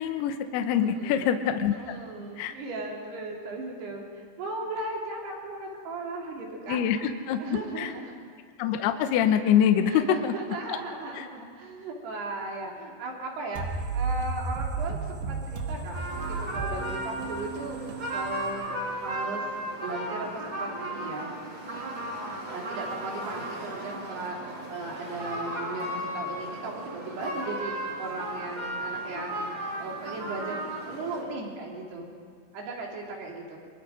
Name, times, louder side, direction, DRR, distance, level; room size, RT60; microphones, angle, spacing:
voice 1, 0.0-2.0 2.4-2.6 6.7-7.9 8.6-10.3 11.2-11.3, left 9 dB, 75° left, 7 dB, 2.7 m, -25 dB
voice 2, 0.8-1.3 1.7-6.8 7.4-8.1 9.9-13.7 13.9-19.4 19.8-21.3 22.5-29.5 29.8-32.1 32.5-33.6, right 2 dB, 65° right, -1 dB, 5.2 m, -37 dB
sound 1, 13.6-19.2, right 4 dB, 80° right, 4.0 m, -34 dB
sound 2, 15.9-31.2, right 1 dB, 25° right, 4.3 m, -35 dB
23.5 x 23.0 x 5.1 m, 2.2 s
omnidirectional pair, 5.3 m